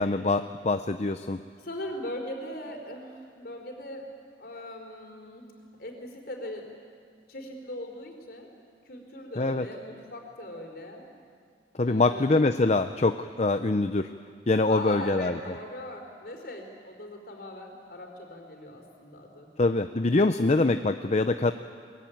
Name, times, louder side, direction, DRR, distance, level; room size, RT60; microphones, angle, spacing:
voice 1, 0.0-1.4 9.4-9.6 11.8-14.1 14.5-15.3 19.6-21.5, left 2 dB, 35° left, 9 dB, 0.6 m, -24 dB
voice 2, 1.6-4.1 4.4-5.5 5.8-6.7 7.3-8.5 8.8-11.1 11.8-12.4 14.7-19.5, left 1 dB, 55° left, 3 dB, 4.3 m, -40 dB
23.0 x 22.5 x 9.3 m, 2.1 s
head